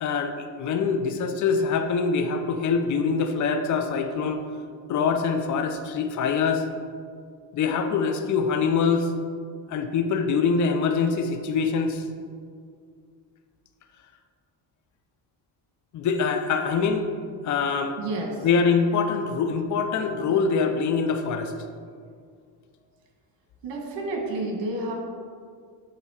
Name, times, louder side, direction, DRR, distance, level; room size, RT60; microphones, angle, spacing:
voice 1, 0.0-4.4 4.9-6.6 7.5-9.1 9.7-12.0 15.9-17.1 17.4-18.0 18.4-21.5, left 5 dB, 45° left, 6 dB, 0.6 m, -24 dB
voice 2, 18.0-18.5 23.6-24.9, right 2 dB, 80° right, 1 dB, 1.5 m, -30 dB
8.3 x 3.0 x 4.8 m, 2.1 s
cardioid pair, 105°, 43 cm